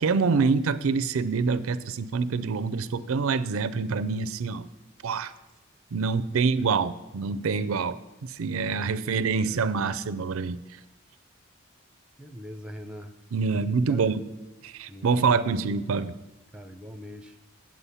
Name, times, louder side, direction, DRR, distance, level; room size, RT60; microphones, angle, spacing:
voice 1, 0.0-4.7 5.0-5.3 5.9-8.0 8.3-10.8 13.3-14.2 14.6-16.1, right 5 dB, 85° right, 14 dB, 0.5 m, -26 dB
voice 2, 6.0-6.7 8.9-9.6 12.2-13.1 13.9-14.2 14.9-15.7 16.5-17.4, equal, 5° right, 6 dB, 0.5 m, -42 dB
8.3 x 7.6 x 5.6 m, 1.1 s
head